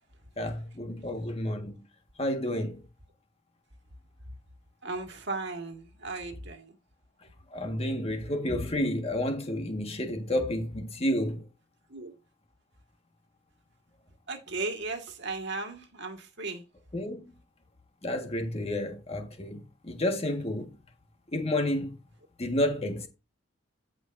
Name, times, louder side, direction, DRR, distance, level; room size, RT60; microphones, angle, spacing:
voice 1, 0.4-1.7 2.2-2.8 7.5-11.4 16.9-17.2 18.0-20.7 21.3-22.0 22.4-23.1, left 1 dB, 30° left, 1.6 m, -30 dB
voice 2, 4.8-6.8 11.9-12.1 14.3-16.6, right 3 dB, 60° right, 1.8 m, -36 dB
15.5 x 5.3 x 2.6 m
head